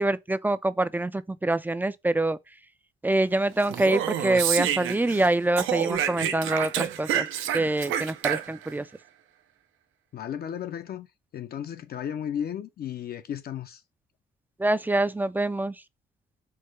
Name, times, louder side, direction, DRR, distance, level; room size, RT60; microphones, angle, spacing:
voice 1, 0.0-2.4 3.0-7.3 7.5-8.9 14.6-15.7, right 2 dB, 10° right, 0.3 m, -25 dB
Speech, 3.6-5.3 5.6-8.7, right 10 dB, 85° right, 0.6 m, -28 dB
voice 2, 10.1-11.1 11.3-13.8, left 9 dB, 50° left, 0.5 m, -34 dB
4.6 x 2.2 x 4.5 m
cardioid pair, 90°, 20 cm